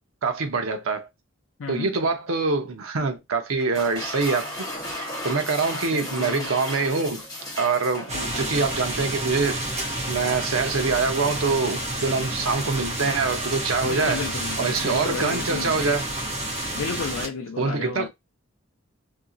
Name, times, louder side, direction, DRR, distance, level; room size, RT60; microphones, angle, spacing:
voice 1, 0.2-1.1 1.7-4.7 5.2-7.2 7.6-9.6 10.1-14.3 14.6-16.0 17.6-18.1, right 4 dB, 85° right, 0.7 m, -25 dB
voice 2, 1.6-2.0 5.9-6.5 8.1-8.5 13.8-15.8 16.7-18.1, left 5 dB, 70° left, 0.4 m, -33 dB
sound 1, 3.6-9.2, left 1 dB, 20° left, 1.3 m, -35 dB
sound 2, 8.1-17.3, right 1 dB, 30° right, 0.9 m, -30 dB
2.8 x 2.7 x 2.5 m
head